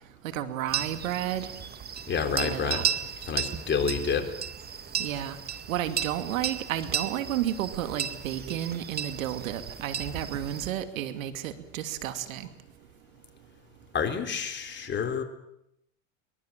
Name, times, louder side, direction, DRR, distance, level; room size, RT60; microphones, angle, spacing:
voice 1, 0.2-1.5 2.3-2.9 5.0-5.4 5.7-12.5, right 11 dB, 80° right, 9 dB, 2.6 m, -32 dB
sound 1, 0.7-10.7, right 8 dB, 25° right, 2.0 m, -34 dB
voice 2, 2.1-2.8 3.3-4.3 13.9-15.2, left 6 dB, 25° left, 5 dB, 3.9 m, -28 dB
23.5 x 22.5 x 7.5 m, 0.78 s
supercardioid pair, 120°, 40 cm